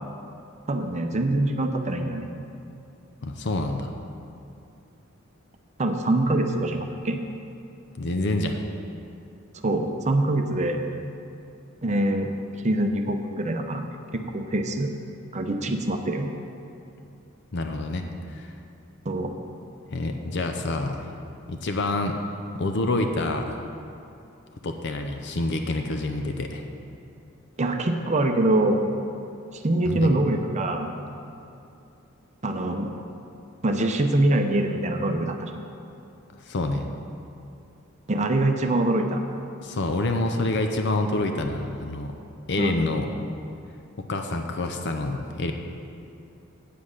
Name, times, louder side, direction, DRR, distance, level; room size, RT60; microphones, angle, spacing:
voice 1, 0.7-2.3 5.8-7.2 9.6-10.8 11.8-12.3 12.6-13.9 14.1-14.9 15.3-16.4 19.1-19.4 27.6-29.0 29.5-30.9 32.4-33.0 33.6-35.6 38.1-39.2 42.6-42.8, right 1 dB, 35° right, 5 dB, 0.7 m, -24 dB
voice 2, 3.2-3.9 8.0-8.6 17.5-18.5 19.9-21.1 21.5-22.2 22.5-23.6 24.6-26.6 29.8-30.1 36.3-36.9 39.6-42.1 42.5-43.1 44.1-45.5, left 2 dB, 55° left, 5 dB, 0.6 m, -27 dB
8.5 x 7.6 x 6.4 m, 2.6 s
head